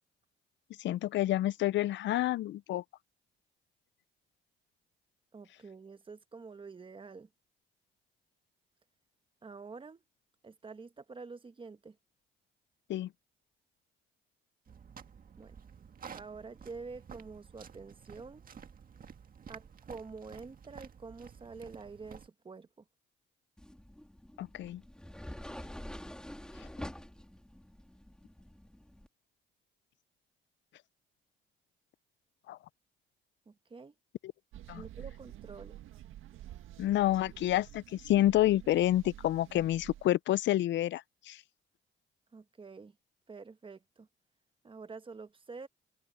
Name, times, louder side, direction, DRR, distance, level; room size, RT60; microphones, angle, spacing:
voice 1, 0.8-2.8 12.9-13.1 24.4-24.8 32.5-32.6 34.7-34.8 36.8-41.4, left 14 dB, 65° left, 0.4 m, -29 dB
voice 2, 5.3-7.3 9.4-10.0 10.4-12.0 15.4-15.6 16.1-18.4 19.5-22.8 33.5-33.9 34.7-35.8 42.3-43.0 43.3-44.1 44.6-45.7, right 4 dB, 25° right, 1.2 m, -47 dB
sound 1, 14.7-22.3, right 7 dB, 45° right, 1.7 m, -51 dB
sound 2, 23.6-29.1, left 1 dB, 5° left, 2.6 m, -47 dB
sound 3, 34.5-40.1, right 12 dB, 85° right, 1.7 m, -49 dB
cardioid pair, 90°, 20 cm